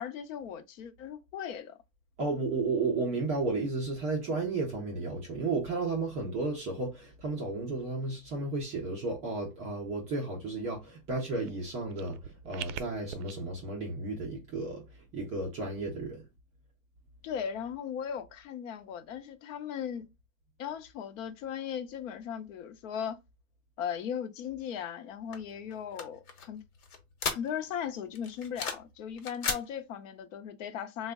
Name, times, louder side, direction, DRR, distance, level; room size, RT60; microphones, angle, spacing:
voice 1, 0.0-1.8 17.2-20.1 20.6-23.2 23.8-26.6 27.3-31.1, left 8 dB, 65° left, 0.7 m, -37 dB
voice 2, 2.2-12.2 12.4-14.8 15.1-16.2, right 3 dB, 20° right, 0.3 m, -33 dB
sound 1, 11.4-13.3, right 10 dB, 85° right, 0.5 m, -43 dB
sound 2, 25.3-27.8 28.2-28.9 29.2-29.6, left 5 dB, 80° left, 1.1 m, -35 dB
3.3 x 2.1 x 3.4 m
supercardioid pair, 150°, 43 cm